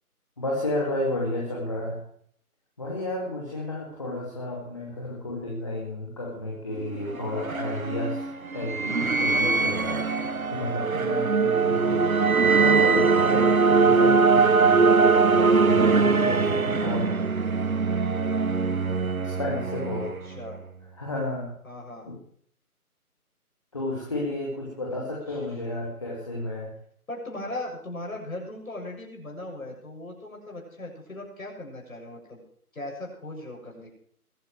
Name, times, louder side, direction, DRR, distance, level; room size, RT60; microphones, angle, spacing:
voice 1, 0.4-2.0 2.8-8.3 8.5-10.0 10.5-17.1 19.2-20.1 21.0-21.5 22.0-22.2 23.7-26.7, left 1 dB, 20° left, -3 dB, 2.5 m, -32 dB
sound 1, 6.8-20.6, right 4 dB, 65° right, 1.3 m, -22 dB
voice 2, 20.0-20.6 21.6-22.1 24.9-25.0 25.3-25.8 27.1-32.4 32.7-33.9, left 1 dB, 65° left, 0 dB, 7.3 m, -38 dB
22.0 x 10.0 x 4.8 m, 0.63 s
figure-of-eight pair, 175°, 46 cm